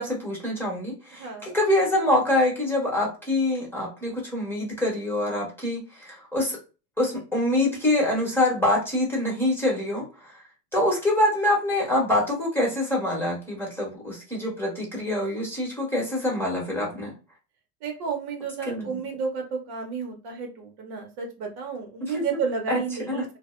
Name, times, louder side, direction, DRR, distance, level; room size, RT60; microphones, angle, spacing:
voice 1, 0.0-6.6 7.0-10.4 10.7-17.1 18.6-19.0 22.0-22.4 22.7-22.8 23.1-23.2, left 1 dB, 5° left, -3 dB, 1.0 m, -25 dB
voice 2, 1.2-1.6 17.8-23.2, right 5 dB, 55° right, 2 dB, 0.8 m, -31 dB
2.5 x 2.1 x 2.4 m, 0.32 s
supercardioid pair, 115°, 43 cm